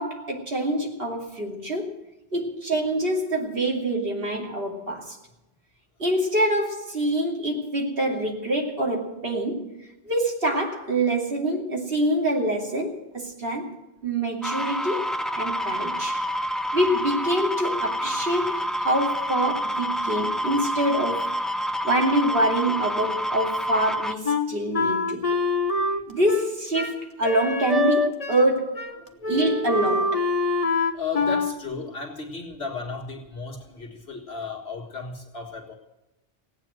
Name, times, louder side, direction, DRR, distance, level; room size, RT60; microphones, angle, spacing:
voice 1, 0.0-2.0 2.3-5.2 6.0-13.7 14.0-15.1 15.4-16.3 16.7-21.4 21.8-25.2 26.1-28.9 29.3-30.2, right 1 dB, 60° right, 2.9 m, -25 dB
sound 1, 14.4-24.2, equal, ahead, 0.5 m, -28 dB
Wind instrument woodwind instrument, 24.2-28.5 28.8-29.0 29.2-31.5, left 3 dB, 35° left, 1.1 m, -25 dB
voice 2, 30.9-35.7, left 4 dB, 70° left, 2.0 m, -34 dB
17.0 x 9.1 x 7.8 m
omnidirectional pair, 1.1 m